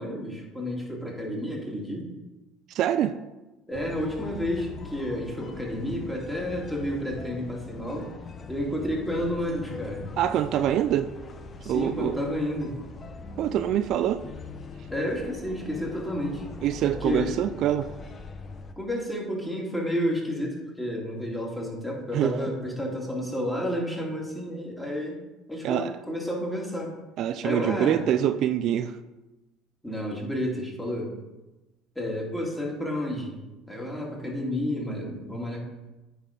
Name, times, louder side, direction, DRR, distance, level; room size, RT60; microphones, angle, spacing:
voice 1, 0.0-2.1 3.7-8.1 8.5-10.1 11.6-12.8 14.9-16.4 16.8-17.4 18.8-25.2 25.5-26.9 27.4-28.0 29.8-31.1 32.0-35.7, equal, 5° left, -2 dB, 2.4 m, -31 dB
voice 2, 2.7-3.2 10.2-11.1 11.7-12.2 13.4-14.2 16.6-17.9 22.1-22.4 25.6-26.0 27.2-29.0, right 11 dB, 60° right, 11 dB, 0.3 m, -25 dB
sound 1, 3.7-18.7, left 4 dB, 35° left, 0.8 m, -41 dB
9.2 x 4.2 x 5.2 m, 1.1 s
supercardioid pair, 100°, 0 cm